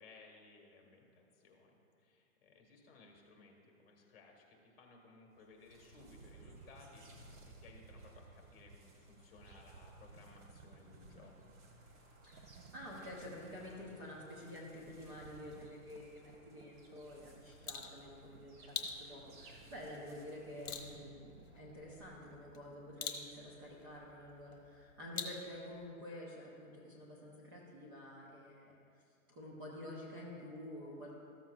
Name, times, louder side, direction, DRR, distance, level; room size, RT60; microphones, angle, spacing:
voice 1, 0.0-7.3 7.6-11.3, left 3 dB, 45° left, 1 dB, 1.7 m, -60 dB
sound 1, 5.3-21.0, right 1 dB, 70° right, 2.2 m, -61 dB
sound 2, 5.9-6.9 7.4-8.9 9.3-11.9 12.3-13.9 15.1-19.6 20.5-22.5 23.4-23.5, right 5 dB, 85° right, 0.8 m, -60 dB
voice 2, 12.2-28.8 29.3-31.1, left 1 dB, 15° right, -5 dB, 0.6 m, -49 dB
sound 3, 17.3-25.9, left 5 dB, 65° left, 1.1 m, -48 dB
14.0 x 7.3 x 2.4 m, 2.4 s
hypercardioid pair, 160°, 43 cm